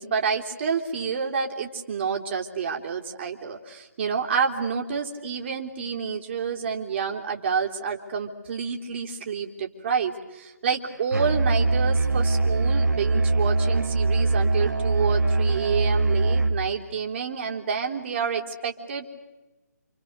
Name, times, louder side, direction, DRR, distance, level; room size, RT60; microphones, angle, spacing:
voice 1, 0.0-19.1, right 6 dB, 40° right, 2 dB, 3.5 m, -28 dB
Musical instrument, 11.1-16.6, right 3 dB, 75° right, 2.1 m, -22 dB
28.5 x 28.5 x 6.7 m, 1.1 s
figure-of-eight pair, 155°, 9 cm